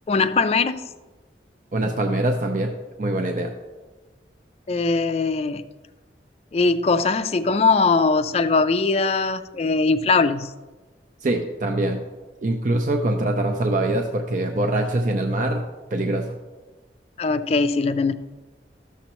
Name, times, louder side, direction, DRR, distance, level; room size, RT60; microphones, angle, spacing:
voice 1, 0.1-0.9 4.7-5.6 6.5-10.5 17.2-18.1, left 4 dB, 35° left, 11 dB, 0.3 m, -21 dB
voice 2, 1.7-2.7 3.0-3.5 11.2-12.0 12.4-15.6 15.9-16.4, right 1 dB, 45° right, 3 dB, 0.5 m, -23 dB
13.0 x 6.9 x 3.0 m, 1.2 s
head